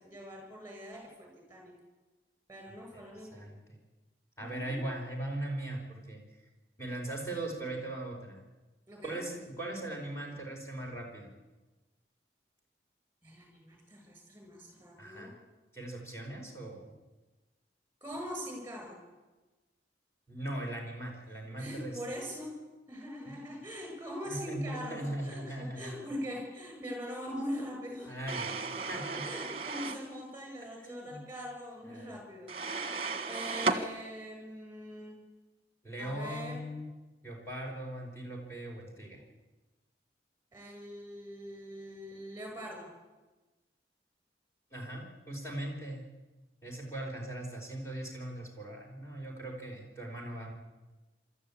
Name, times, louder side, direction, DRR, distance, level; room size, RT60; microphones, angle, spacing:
voice 1, 0.0-1.7 2.5-3.4 4.4-4.8 8.9-9.2 13.2-15.3 18.0-19.0 21.6-22.5 22.9-28.1 29.2-32.9 33.2-35.2 36.0-36.6 40.5-42.9, equal, 15° right, 1 dB, 7.6 m, -42 dB
voice 2, 4.4-6.2 6.8-8.4 9.0-11.3 15.0-15.3 15.7-16.9 20.3-22.0 23.3-23.4 24.2-25.9 28.1-29.4 30.8-31.2 31.8-32.2 35.8-36.9 37.2-39.2 44.7-46.0 46.6-50.5, right 1 dB, 15° left, -1 dB, 5.0 m, -39 dB
sound 1, 28.3-30.1 32.5-33.8, right 4 dB, 30° right, 1.5 m, -34 dB
25.0 x 13.5 x 8.7 m, 1.2 s
head